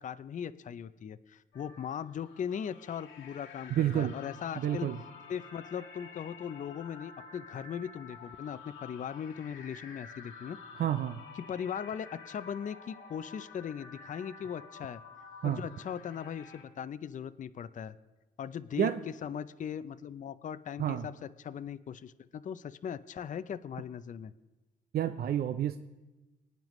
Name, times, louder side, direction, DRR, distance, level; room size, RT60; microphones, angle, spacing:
voice 1, 0.0-4.9 5.3-10.6 11.5-15.0 15.4-18.0 18.4-18.9 19.2-24.3, left 8 dB, 40° left, 13 dB, 0.5 m, -39 dB
sound 1, 1.5-16.6, left 5 dB, 75° left, 1.6 m, -50 dB
voice 2, 3.7-4.2 4.6-5.0 10.8-11.2 15.4-15.6 18.8-19.0 20.8-21.1 24.9-25.8, right 10 dB, 50° right, 9 dB, 0.5 m, -29 dB
24.5 x 9.2 x 3.1 m, 1.1 s
cardioid pair, 90°, 20 cm